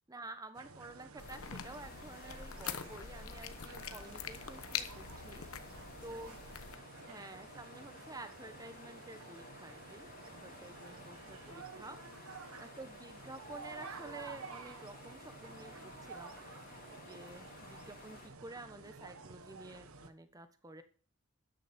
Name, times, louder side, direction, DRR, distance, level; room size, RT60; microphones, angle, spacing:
voice 1, 0.1-5.4 6.0-6.4 7.0-12.0 12.6-16.4 16.9-20.8, right 2 dB, 15° right, 9 dB, 1.2 m, -50 dB
sound 1, 0.5-20.1, right 4 dB, 75° right, 1.2 m, -52 dB
sound 2, 1.2-6.8, left 8 dB, 75° left, 1.1 m, -44 dB
sound 3, 1.2-18.3, left 3 dB, 40° left, 3.3 m, -55 dB
voice 2, 5.7-6.6 7.0-7.4 10.3-11.1 12.3-12.7 16.2-16.9, right 3 dB, 55° right, 2 dB, 3.9 m, -64 dB
13.0 x 10.0 x 4.5 m, 0.43 s
head